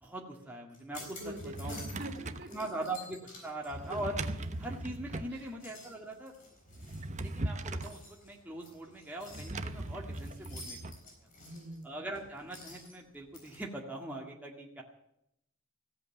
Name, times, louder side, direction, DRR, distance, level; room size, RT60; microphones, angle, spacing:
voice 1, 0.0-1.2 1.6-1.8 2.5-4.2 4.6-6.3 7.2-11.1 11.8-14.8, right 1 dB, 10° right, -1 dB, 1.9 m, -41 dB
sound 1, 0.7-2.2 2.5-4.9 5.3-13.6, left 2 dB, 40° left, 6.5 m, -52 dB
Drawer open or close, 1.2-2.5 3.7-5.4 6.7-8.0 9.3-11.0, right 2 dB, 35° right, 0.9 m, -39 dB
voice 2, 1.2-2.9 5.3-5.5 11.4-11.9, right 1 dB, 50° right, 4 dB, 2.5 m, -45 dB
16.0 x 8.4 x 9.9 m, 0.79 s
head